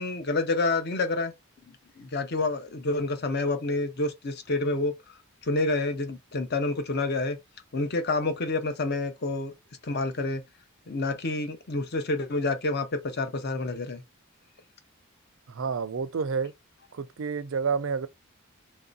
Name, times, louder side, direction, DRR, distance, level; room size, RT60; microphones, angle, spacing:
voice 1, 0.0-1.3 2.0-4.9 5.4-7.4 7.7-9.5 9.8-10.4 10.9-14.0, left 2 dB, 50° left, 0.7 m, -28 dB
voice 2, 15.5-16.5 16.9-18.1, right 5 dB, 65° right, 0.4 m, -29 dB
3.1 x 2.8 x 3.8 m
head